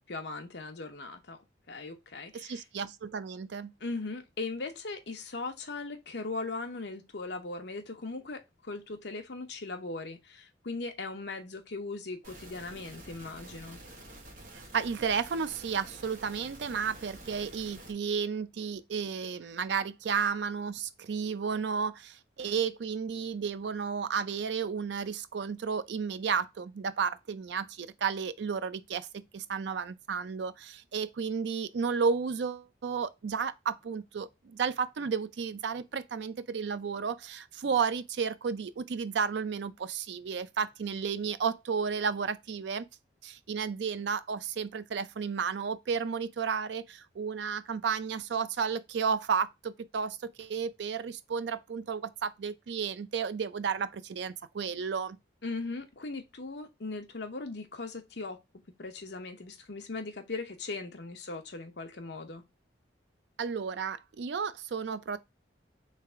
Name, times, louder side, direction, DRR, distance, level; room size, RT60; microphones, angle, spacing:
voice 1, 0.0-2.6 3.8-13.8 55.4-58.4 58.8-62.4, left 3 dB, 65° left, 0.8 m, -39 dB
voice 2, 2.3-3.7 14.7-42.9 43.2-55.2 63.4-65.2, right 6 dB, 65° right, 0.4 m, -32 dB
sound 1, 12.2-17.9, right 1 dB, 45° right, 1.2 m, -49 dB
3.3 x 3.3 x 3.5 m
head